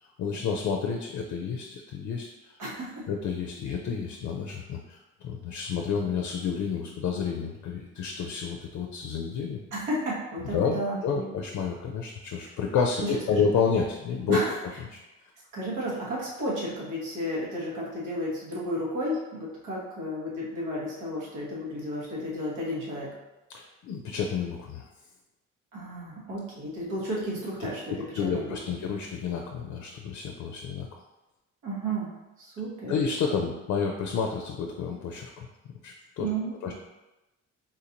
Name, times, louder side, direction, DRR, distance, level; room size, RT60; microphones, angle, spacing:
voice 1, 0.2-2.5 3.1-9.6 10.5-14.4 14.9-15.0 23.5-24.8 27.6-27.7 28.2-31.0 32.9-35.5 35.8-36.3 36.6-36.7, left 6 dB, 65° left, 2 dB, 0.5 m, -30 dB
voice 2, 2.6-3.1 9.7-11.3 13.0-13.4 14.3-14.6 15.5-23.1 25.7-28.5 31.6-33.0 36.2-36.5, equal, 90° right, -5 dB, 1.3 m, -33 dB
3.8 x 2.6 x 2.8 m, 1.0 s
cardioid pair, 90°, 30 cm